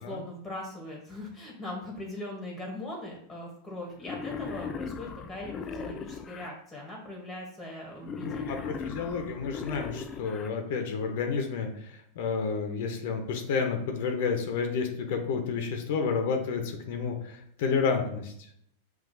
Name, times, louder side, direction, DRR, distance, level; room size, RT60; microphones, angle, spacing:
voice 1, 0.0-8.7, left 1 dB, 10° left, -1 dB, 1.0 m, -40 dB
Wild animals, 4.0-6.5 8.0-10.5, left 5 dB, 30° left, 0.3 m, -38 dB
voice 2, 8.2-18.5, left 5 dB, 65° left, 4 dB, 0.6 m, -30 dB
5.8 x 2.4 x 2.6 m, 0.69 s
hypercardioid pair, 105°, 0 cm